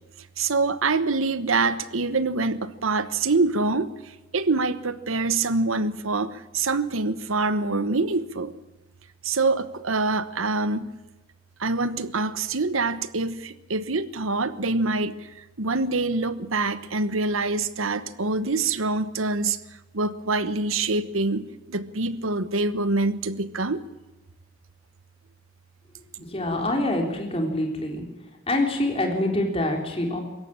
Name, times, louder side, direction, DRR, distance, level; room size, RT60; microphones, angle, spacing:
voice 1, 0.4-3.9 4.3-8.5 9.2-10.9 11.6-19.6 19.9-23.8, right 3 dB, 90° right, 14 dB, 1.1 m, -25 dB
voice 2, 26.2-28.0 28.5-30.2, left 1 dB, 30° left, 2 dB, 3.9 m, -25 dB
24.0 x 14.0 x 8.9 m, 1.0 s
head